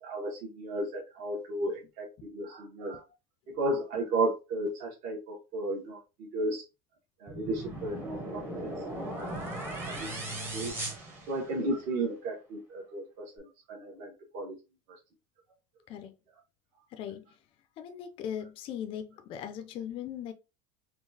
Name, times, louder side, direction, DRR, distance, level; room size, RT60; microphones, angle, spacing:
voice 1, 0.0-3.0 3.6-6.6 7.2-8.7 9.2-10.1 10.5-10.7 11.3-14.5, right 2 dB, 50° right, 1.2 m, -34 dB
sound 1, 7.3-11.9, right 1 dB, 10° right, 0.8 m, -38 dB
voice 2, 16.9-17.2 17.8-20.3, left 9 dB, 30° left, 0.4 m, -39 dB
3.8 x 2.4 x 2.7 m
cardioid pair, 170°, 17 cm